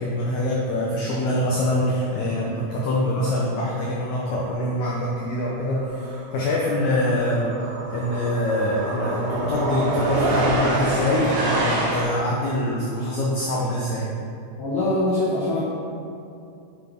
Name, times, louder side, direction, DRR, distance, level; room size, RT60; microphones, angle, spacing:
voice 1, 0.0-7.5 7.9-14.1, left 1 dB, 90° left, -4 dB, 1.6 m, -24 dB
sound 1, 5.2-5.4 5.7-12.0, right 1 dB, 65° right, 2.7 m, -26 dB
voice 2, 14.6-15.7, left 1 dB, 65° left, -9 dB, 3.0 m, -23 dB
9.1 x 7.7 x 3.7 m, 2.5 s
omnidirectional pair, 4.7 m